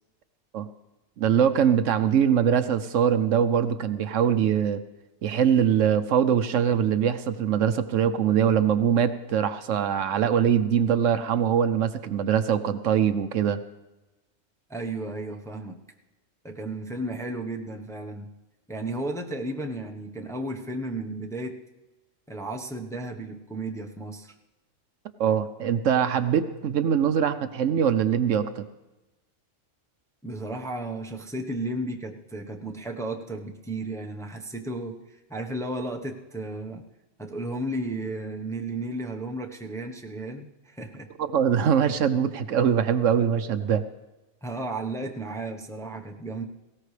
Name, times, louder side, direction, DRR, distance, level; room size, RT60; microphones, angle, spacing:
voice 1, 1.2-4.8 5.2-13.6 25.2-28.6 41.2-43.8, right 8 dB, 70° right, 11 dB, 1.0 m, -23 dB
voice 2, 14.7-15.8 16.4-18.3 18.7-21.6 22.3-24.3 30.2-36.8 37.2-41.1 44.4-46.4, right 2 dB, 5° left, 2 dB, 0.8 m, -34 dB
19.0 x 17.0 x 3.3 m, 1.0 s
omnidirectional pair, 1.4 m